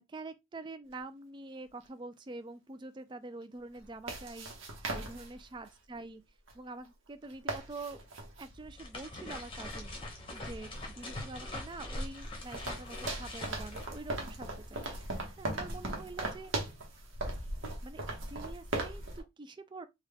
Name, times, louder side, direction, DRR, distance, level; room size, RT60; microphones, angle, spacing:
voice 1, 0.1-6.2 6.5-8.0 8.4-9.9 10.3-16.5 17.8-19.9, right 3 dB, 25° right, 0.3 m, -46 dB
sound 1, 0.9-1.0 3.8-5.7 6.5-6.6 6.8-6.9 7.2-8.5 11.0-11.1 11.7-19.2, right 2 dB, 70° right, 0.9 m, -39 dB
sound 2, 8.4-14.8, left 1 dB, 25° left, 0.8 m, -42 dB
3.4 x 2.2 x 3.4 m
head